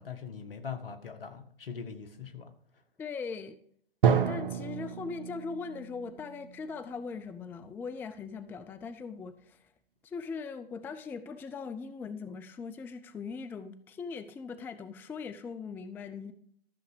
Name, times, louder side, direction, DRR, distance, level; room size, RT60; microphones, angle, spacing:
voice 1, 0.0-2.5, left 6 dB, 70° left, 9 dB, 1.8 m, -41 dB
voice 2, 3.0-3.6 4.3-9.6 10.0-16.3, left 5 dB, 5° left, 11 dB, 0.4 m, -40 dB
Drum, 4.0-7.7, right 7 dB, 60° right, 1.4 m, -31 dB
13.5 x 7.1 x 5.0 m, 0.63 s
figure-of-eight pair, 110°, 29 cm